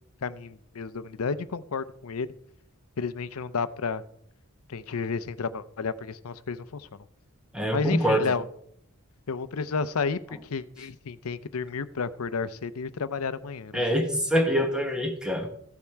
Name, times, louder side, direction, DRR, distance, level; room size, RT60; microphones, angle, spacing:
voice 1, 0.2-2.3 3.0-4.0 4.7-7.0 7.7-8.4 9.3-13.8, left 5 dB, 80° left, 14 dB, 0.6 m, -31 dB
voice 2, 7.5-8.3 13.7-15.5, equal, 5° right, 4 dB, 1.2 m, -25 dB
14.5 x 7.2 x 4.5 m, 0.70 s
head